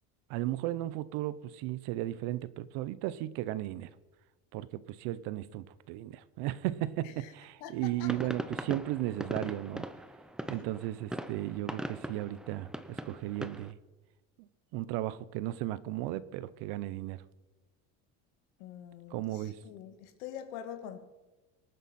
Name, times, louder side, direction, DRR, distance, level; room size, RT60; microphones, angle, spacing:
voice 1, 0.3-3.9 4.5-9.9 10.5-13.8 14.4-14.5 14.7-17.2 19.1-19.6, right 15 dB, 70° right, 0.9 m, -35 dB
voice 2, 7.6-8.1 18.6-21.1, left 9 dB, 85° left, 1.8 m, -44 dB
sound 1, 8.0-13.7, right 1 dB, ahead, 0.4 m, -40 dB
24.5 x 9.2 x 4.3 m
cardioid pair, 145°, 41 cm